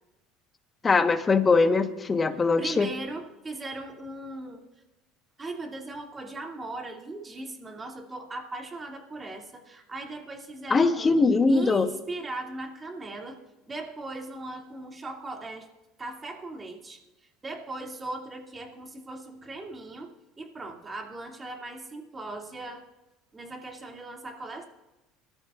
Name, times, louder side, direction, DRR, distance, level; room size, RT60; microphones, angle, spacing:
voice 1, 0.8-2.9 10.7-11.9, left 4 dB, 25° left, 8 dB, 1.3 m, -21 dB
voice 2, 2.6-4.6 5.4-13.4 13.7-15.7 16.0-17.0 17.4-20.1 20.4-22.8 23.3-24.6, right 2 dB, 25° right, 2 dB, 2.6 m, -38 dB
22.0 x 13.0 x 2.5 m, 1.0 s
supercardioid pair, 90°, 0 cm